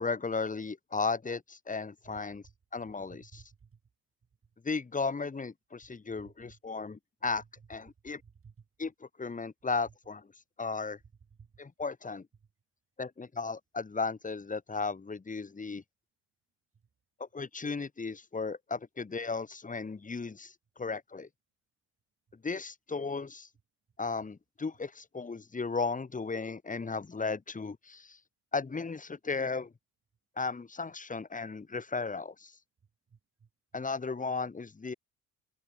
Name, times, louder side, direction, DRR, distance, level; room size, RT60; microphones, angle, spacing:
voice 1, 0.0-2.4 2.7-3.4 4.6-7.4 7.7-8.2 8.8-10.3 10.6-11.0 11.6-12.3 13.0-15.8 17.2-21.3 22.4-23.5 24.0-28.2 28.5-29.7 30.4-32.6 33.7-34.9, left 4 dB, 20° left, 1.8 m, -35 dB
voice 2, 2.0-2.5 3.1-3.8 6.2-6.6 8.2-8.5 11.4-11.5 33.1-33.5, right 6 dB, 40° right, 6.3 m, -56 dB
open air
hypercardioid pair, 60°, 34 cm